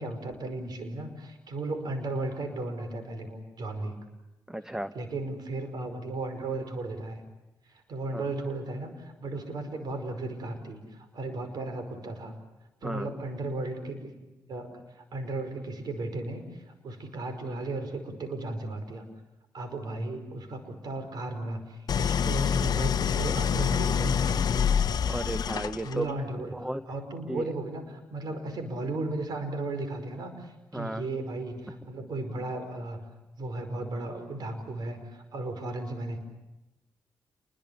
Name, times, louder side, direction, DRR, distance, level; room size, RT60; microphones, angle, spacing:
voice 1, 0.0-3.9 4.9-7.2 7.7-12.3 12.8-19.0 19.5-24.6 25.8-33.0 33.4-36.2, right 2 dB, 70° right, 8 dB, 5.2 m, -35 dB
voice 2, 4.5-4.9 8.1-8.3 12.8-13.1 25.0-26.1 26.5-26.8 27.3-27.4 30.7-31.1, right 1 dB, 10° right, 11 dB, 0.9 m, -34 dB
Idling, 21.9-26.1, left 7 dB, 65° left, 0.8 m, -26 dB
28.5 x 22.0 x 7.1 m, 1.0 s
cardioid pair, 65°, 7 cm